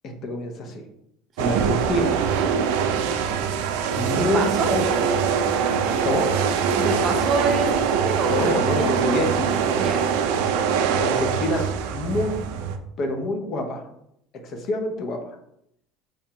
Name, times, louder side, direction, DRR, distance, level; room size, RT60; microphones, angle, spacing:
voice 1, 0.0-0.8 1.4-2.2 3.9-4.8 6.0-6.4 8.3-9.6 11.0-12.5 13.0-13.9 14.4-15.3, left 1 dB, 45° left, 4 dB, 0.6 m, -26 dB
sound 1, 1.4-12.8, right 6 dB, 85° right, 0.3 m, -23 dB
voice 2, 3.1-3.4 4.1-4.7 6.8-9.2 9.8-10.0, right 4 dB, 40° right, 4 dB, 0.6 m, -27 dB
4.8 x 2.1 x 2.8 m, 0.76 s
cardioid pair, 130°, 0 cm